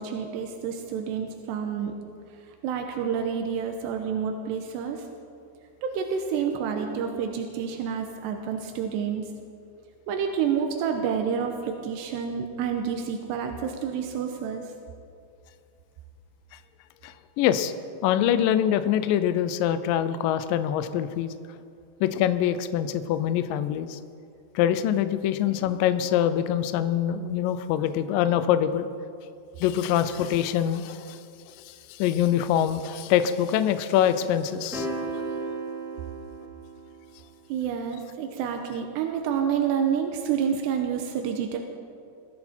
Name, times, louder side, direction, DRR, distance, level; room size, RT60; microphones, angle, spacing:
voice 1, 0.0-1.9 2.6-5.0 5.8-9.2 10.1-14.6 37.5-41.6, right 7 dB, 85° right, 4 dB, 3.1 m, -28 dB
voice 2, 17.0-17.7 18.0-21.3 22.0-24.0 24.6-28.9 29.6-31.2 31.7-34.9, left 10 dB, 85° left, 11 dB, 1.9 m, -24 dB
sound 1, 34.7-37.1, right 2 dB, ahead, 2.4 m, -34 dB
21.5 x 14.5 x 4.4 m, 2.5 s
omnidirectional pair, 4.8 m